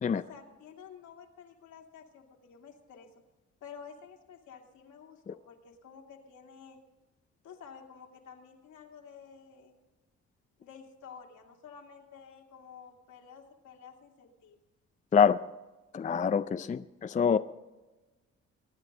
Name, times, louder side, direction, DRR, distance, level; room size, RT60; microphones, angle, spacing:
voice 1, 0.1-3.1 3.6-6.8 7.4-9.7 10.6-14.6, left 6 dB, 75° left, 1 dB, 2.6 m, -51 dB
voice 2, 15.9-17.4, left 6 dB, 25° left, 11 dB, 0.4 m, -25 dB
23.5 x 9.9 x 4.0 m, 1.1 s
cardioid pair, 90°, 30 cm